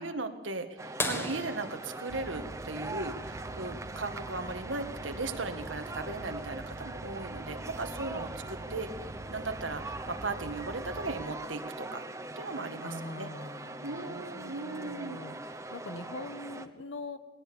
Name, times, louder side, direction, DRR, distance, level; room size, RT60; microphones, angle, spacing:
voice 1, 0.0-8.9 9.3-12.0 12.4-13.3 13.8-15.3, right 3 dB, 85° right, 7 dB, 1.8 m, -37 dB
sound 1, 0.8-16.7, right 2 dB, 15° right, 0.9 m, -42 dB
sound 2, 1.0-3.4 5.4-5.5 7.7-7.8 9.5-9.8 10.6-10.7, left 1 dB, 10° left, 1.6 m, -37 dB
sound 3, 2.1-11.2, right 2 dB, 30° right, 0.8 m, -45 dB
voice 2, 12.8-17.2, left 2 dB, 75° left, 11 dB, 1.4 m, -43 dB
21.0 x 18.0 x 7.0 m, 1.2 s
head